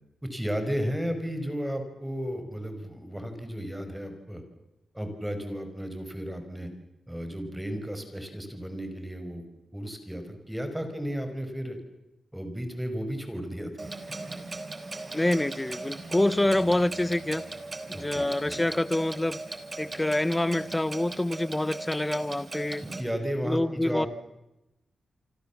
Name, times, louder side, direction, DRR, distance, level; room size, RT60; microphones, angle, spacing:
voice 1, 0.2-4.4 4.9-6.7 7.1-9.4 9.7-11.8 12.3-13.9 17.9-18.6 23.0-24.1, equal, 5° right, 5.3 m, -34 dB
Clock, 13.8-23.0, right 2 dB, 30° right, 3.8 m, -38 dB
voice 2, 15.1-17.4 17.9-19.4 19.8-22.8 23.4-24.1, left 1 dB, 15° left, 1.0 m, -26 dB
28.5 x 24.5 x 7.3 m
cardioid pair, 95°, 0 cm